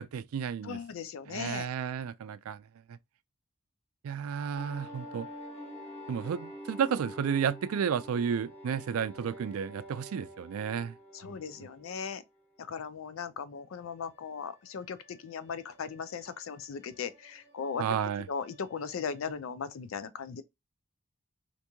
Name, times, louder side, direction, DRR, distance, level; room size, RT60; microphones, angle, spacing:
voice 1, 0.0-0.8 1.3-2.6 2.9-3.0 4.0-5.3 6.1-10.9 11.2-11.7 17.8-18.3, right 7 dB, 90° right, 0.3 m, -32 dB
voice 2, 0.6-1.7 11.1-12.2 12.7-17.8 18.3-20.4, left 6 dB, 75° left, 0.4 m, -38 dB
sound 1, 4.5-12.1 14.0-19.3, equal, 10° left, 1.2 m, -48 dB
2.9 x 2.6 x 3.4 m
head